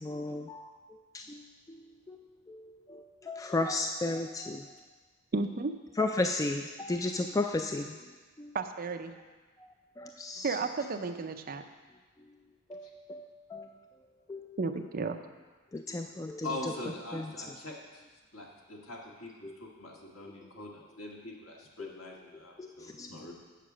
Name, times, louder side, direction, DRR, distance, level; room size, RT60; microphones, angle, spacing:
voice 1, 0.0-0.8 1.1-1.4 1.7-2.2 2.5-4.6 6.0-8.1 8.4-8.5 9.6-9.7 10.0-10.6 12.7-13.7 14.3-14.6 15.7-16.5 17.1-17.3 19.4-19.5 20.2-20.3 21.8-22.1 22.6-23.1, left 2 dB, 15° left, 4 dB, 0.3 m, -34 dB
voice 2, 5.3-5.7 8.5-9.1 10.4-11.6 14.6-15.2, right 4 dB, 45° right, 7 dB, 0.5 m, -33 dB
voice 3, 16.4-18.0 18.3-23.3, left 2 dB, 70° left, -2 dB, 1.7 m, -43 dB
8.2 x 6.7 x 6.1 m, 1.3 s
head